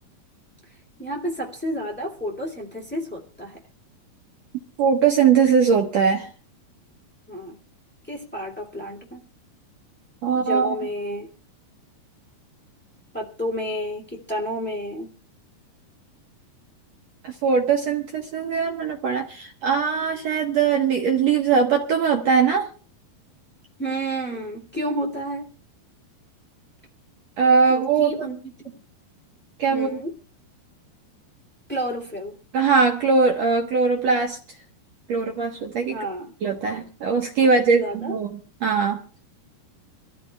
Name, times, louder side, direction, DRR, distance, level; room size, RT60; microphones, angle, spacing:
voice 1, 0.7-3.6 7.3-7.6 8.0-9.3 10.3-11.3 13.1-15.1 23.8-25.5 27.7-28.8 29.7-30.2 31.7-32.4 35.9-36.3 37.7-38.1, equal, 15° left, -3 dB, 0.3 m, -31 dB
voice 2, 4.8-6.3 10.2-10.7 17.2-22.7 27.4-28.3 29.6-30.0 32.5-34.4 35.1-36.0 36.4-39.0, right 5 dB, 80° right, 2 dB, 1.5 m, -21 dB
26.5 x 14.5 x 2.3 m, 0.38 s
omnidirectional pair, 5.0 m